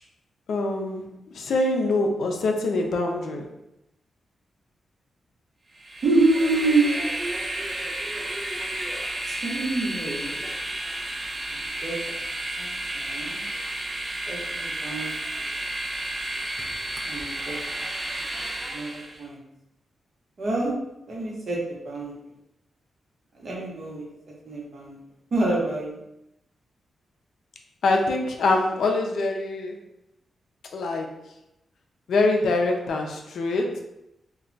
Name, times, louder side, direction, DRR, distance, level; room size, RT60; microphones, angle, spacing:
voice 1, 0.5-1.0 1.3-3.5 27.8-29.8 30.7-31.2 32.1-33.8, left 2 dB, 80° left, 2 dB, 0.4 m, -24 dB
Train, 5.7-19.2, right 1 dB, 30° right, 0.4 m, -32 dB
voice 2, 6.0-6.9 9.3-10.4 11.4-12.2 12.6-13.4 14.3-15.1 15.4-15.5 17.0-17.6 18.6-19.4 20.4-20.7 21.1-22.1 23.3-24.0 24.4-25.0 25.3-26.0, right 2 dB, 50° right, -3 dB, 0.9 m, -27 dB
2.2 x 2.1 x 3.8 m, 0.86 s
wide cardioid pair, 115°, 0 cm